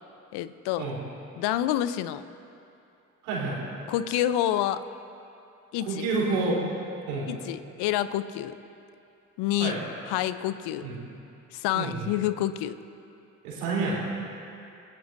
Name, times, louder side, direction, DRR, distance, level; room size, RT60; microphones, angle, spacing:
voice 1, 0.3-0.9 1.4-2.2 3.9-4.8 5.7-6.1 7.3-8.5 9.4-9.8 10.1-10.9 11.5-12.8, left 12 dB, 70° left, 14 dB, 0.7 m, -28 dB
voice 2, 3.2-3.6 5.8-6.6 7.1-7.3 9.6-9.8 10.8-11.0 11.7-12.1 13.4-14.0, right 3 dB, 80° right, -5 dB, 3.7 m, -28 dB
27.5 x 16.5 x 2.7 m, 2.7 s
hypercardioid pair, 45°, 41 cm